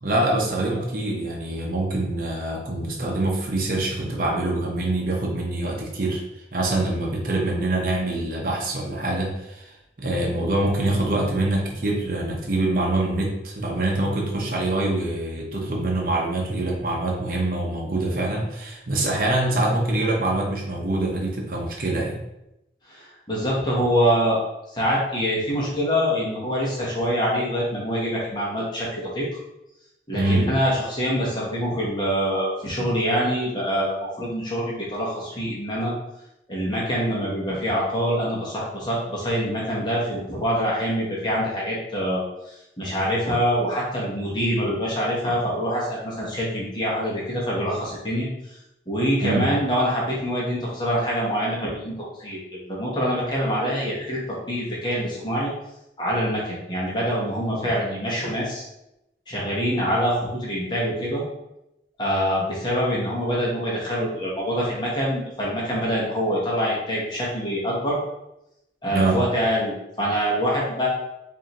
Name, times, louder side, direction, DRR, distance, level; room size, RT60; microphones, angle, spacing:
voice 1, 0.0-6.2 6.5-22.2 30.1-30.6 49.2-49.5 68.9-69.3, right 2 dB, 50° right, -1 dB, 0.7 m, -25 dB
voice 2, 22.9-24.4 24.7-29.3 30.1-35.9 36.5-48.3 48.9-51.9 52.2-55.5 56.0-58.6 59.3-61.2 62.0-68.0 68.8-70.9, equal, 25° left, -5 dB, 1.1 m, -25 dB
4.8 x 2.7 x 2.9 m, 0.88 s
head